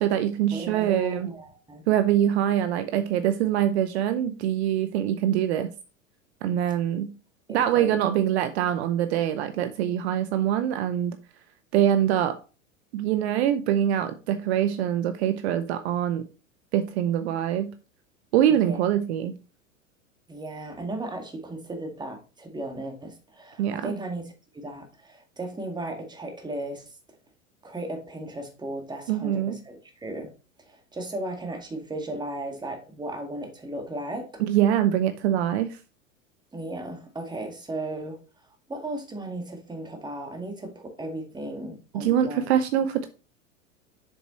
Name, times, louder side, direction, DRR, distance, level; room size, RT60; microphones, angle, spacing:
voice 1, 0.0-1.3 1.9-5.7 6.4-7.1 7.5-11.2 11.7-12.4 12.9-16.3 16.7-17.7 18.3-19.3 23.6-23.9 29.1-29.6 34.4-35.8 41.9-43.1, right 10 dB, 55° right, 0.8 m, -24 dB
voice 2, 0.5-1.8 7.5-8.0 18.5-18.8 20.3-27.0 27.6-30.3 30.6-34.4 36.5-38.2 38.7-42.4, right 1 dB, 10° right, 2.0 m, -36 dB
7.1 x 7.1 x 3.1 m
figure-of-eight pair, 90°, 40 cm